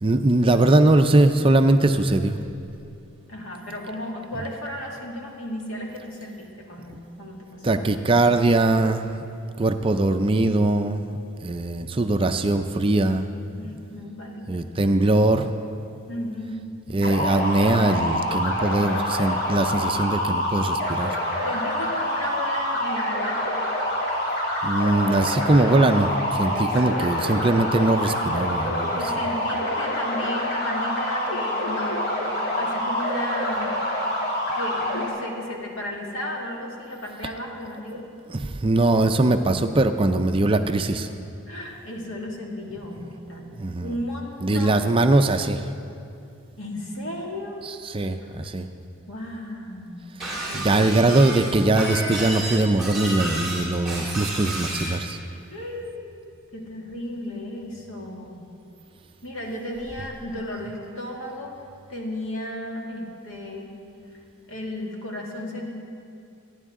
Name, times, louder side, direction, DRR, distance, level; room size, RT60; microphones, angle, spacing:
voice 1, 0.0-2.4 7.6-9.2 9.6-13.3 14.5-15.5 16.9-21.2 24.6-29.1 38.3-41.1 43.6-43.9 44.4-45.7 47.6-48.7 50.5-55.2, right 2 dB, 25° right, 7 dB, 0.4 m, -21 dB
voice 2, 3.3-8.1 13.6-14.7 16.1-16.6 21.4-23.6 26.5-27.1 28.9-33.8 34.5-38.1 41.5-43.5 43.8-45.3 46.6-47.7 49.1-50.9 55.5-56.2 56.5-58.5 59.2-61.6 61.9-63.8 64.5-65.7, left 1 dB, 70° left, -1 dB, 2.2 m, -34 dB
sound 1, 17.0-35.1, left 1 dB, 45° left, 2.7 m, -26 dB
Shatter, 50.2-55.0, right 1 dB, ahead, 3.6 m, -31 dB
26.0 x 10.0 x 3.7 m, 2.5 s
head